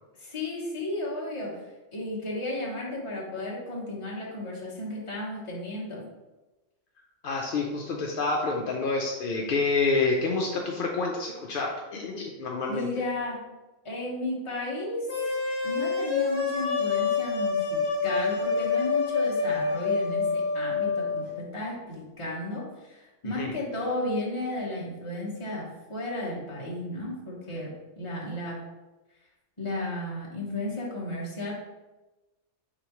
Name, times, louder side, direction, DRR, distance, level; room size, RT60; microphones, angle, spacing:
voice 1, 0.2-1.6 1.9-6.0 12.7-13.4 13.8-15.1 15.6-25.6 25.9-27.7 28.0-28.6 29.6-31.5, left 1 dB, 25° left, -5 dB, 1.0 m, -33 dB
voice 2, 7.2-12.9 23.2-23.5, left 3 dB, 70° left, 0 dB, 0.5 m, -28 dB
sound 1, 15.1-21.2, left 5 dB, 45° left, 1.0 m, -27 dB
4.8 x 3.3 x 2.9 m, 1.1 s
omnidirectional pair, 1.4 m